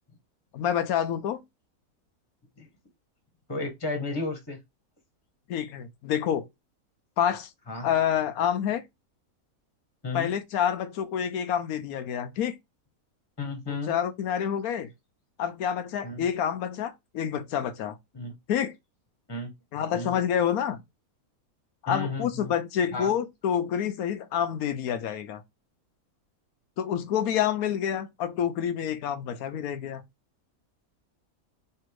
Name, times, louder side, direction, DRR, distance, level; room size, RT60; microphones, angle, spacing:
voice 1, 0.5-1.4 5.5-6.5 7.2-7.5 7.8-8.8 10.1-12.5 13.7-14.9 15.4-18.0 18.5-18.7 19.7-20.8 21.8-25.4 26.8-30.0, left 9 dB, 85° left, 1.1 m, -28 dB
voice 2, 3.5-4.6 7.7-7.9 10.0-10.3 13.4-13.9 16.0-16.2 18.1-18.3 19.3-19.5 19.9-20.1 21.9-22.5 22.9-23.1, left 3 dB, 20° left, 1.0 m, -33 dB
3.4 x 2.8 x 4.5 m
omnidirectional pair, 1.5 m